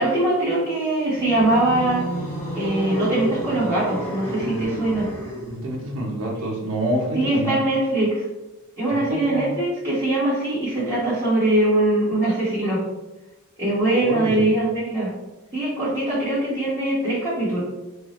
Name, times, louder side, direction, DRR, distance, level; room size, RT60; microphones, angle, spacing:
voice 1, 0.0-2.0 2.5-5.1 7.1-8.2 8.8-12.8 13.6-15.1 15.5-17.6, right 1 dB, 10° right, -14 dB, 1.3 m, -22 dB
sound 1, 1.0-5.7, right 1 dB, 10° left, 0.9 m, -30 dB
voice 2, 5.5-7.6 8.9-9.5 14.0-14.5, right 1 dB, 75° right, -2 dB, 0.8 m, -27 dB
4.5 x 2.3 x 3.0 m, 1.0 s
head